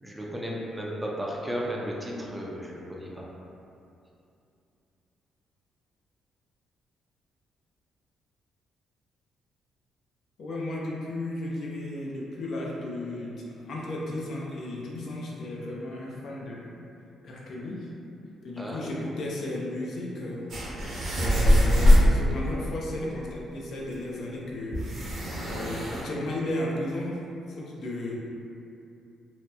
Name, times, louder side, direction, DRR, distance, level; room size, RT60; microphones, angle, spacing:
voice 1, 0.0-3.2 18.6-18.9, equal, 10° right, -3 dB, 0.4 m, -34 dB
voice 2, 10.4-16.7 17.2-17.9 18.4-20.5 20.8-27.2 27.5-28.2, left 1 dB, 65° left, -4 dB, 0.4 m, -34 dB
sound 1, 20.5-22.1 23.6-23.7 23.9-24.0 24.7-26.0, left 1 dB, 55° right, 0.7 m, -21 dB
2.8 x 2.0 x 2.2 m, 2.6 s
cardioid pair, 90°, 0 cm